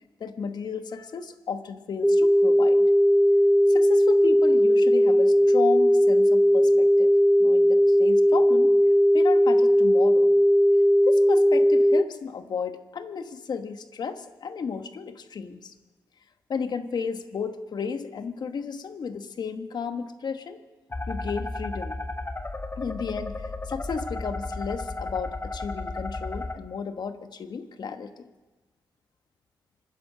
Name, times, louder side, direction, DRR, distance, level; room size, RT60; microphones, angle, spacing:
voice 1, 0.2-2.9 3.7-7.1 7.4-8.7 9.1-10.3 11.0-15.7 16.5-20.6 21.1-21.9 22.8-28.2, left 6 dB, 65° left, 8 dB, 1.2 m, -33 dB
sound 1, 2.0-12.0, equal, ahead, 0.4 m, -18 dB
sound 2, 20.9-26.5, left 2 dB, 30° left, 1.4 m, -33 dB
26.0 x 10.0 x 5.0 m, 1.2 s
cardioid pair, 60°, 8 cm